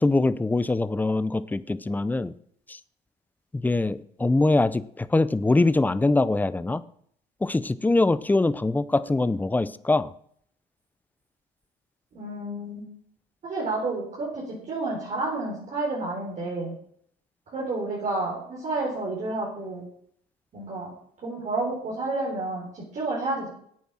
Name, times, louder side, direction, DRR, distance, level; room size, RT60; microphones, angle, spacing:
voice 1, 0.0-2.3 2.7-2.8 3.5-6.8 7.4-10.1, left 2 dB, 10° left, 16 dB, 0.5 m, -23 dB
voice 2, 12.1-12.8 13.4-16.7 17.5-19.8 20.5-20.9 21.2-23.5, right 2 dB, 45° right, -5 dB, 4.0 m, -30 dB
8.7 x 8.6 x 6.0 m, 0.65 s
cardioid pair, 110°, 17 cm